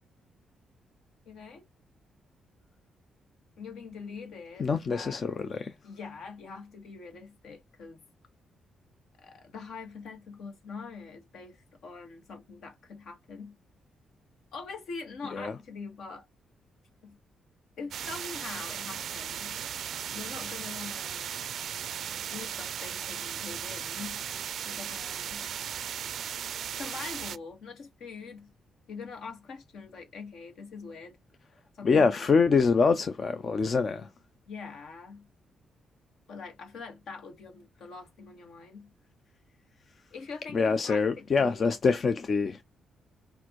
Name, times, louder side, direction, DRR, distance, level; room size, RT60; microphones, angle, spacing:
voice 1, 1.2-1.6 3.6-5.4 5.8-8.0 9.2-13.6 14.5-16.3 17.0-17.2 17.8-19.6 20.1-21.4 22.2-24.2 24.6-25.5 26.8-28.5 28.9-31.2 31.7-32.4 34.5-35.3 36.3-38.9 40.1-41.7, left 4 dB, 65° left, 1.5 m, -43 dB
voice 2, 4.6-5.7 15.3-15.5 31.8-34.1 40.5-42.6, left 5 dB, 30° left, 0.4 m, -25 dB
sound 1, 17.9-27.4, right 9 dB, 55° right, 0.4 m, -36 dB
5.9 x 2.5 x 3.0 m
wide cardioid pair, 175°, 0 cm